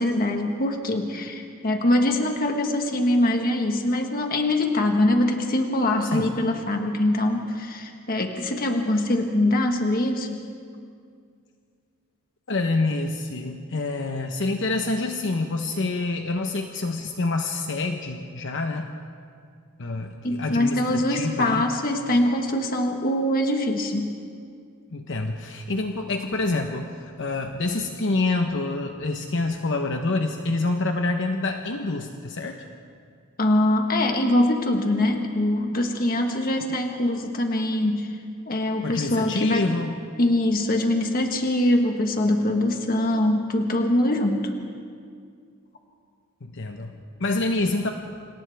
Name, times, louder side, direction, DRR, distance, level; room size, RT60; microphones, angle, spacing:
voice 1, 0.0-10.4 20.2-24.1 33.4-38.2 38.5-39.7 40.2-44.5, left 1 dB, 45° left, 3 dB, 1.5 m, -23 dB
voice 2, 12.5-18.9 19.8-21.7 24.9-32.6 38.8-39.9 46.4-47.9, left 2 dB, 60° left, 4 dB, 1.0 m, -27 dB
29.0 x 27.0 x 3.5 m, 2.2 s
head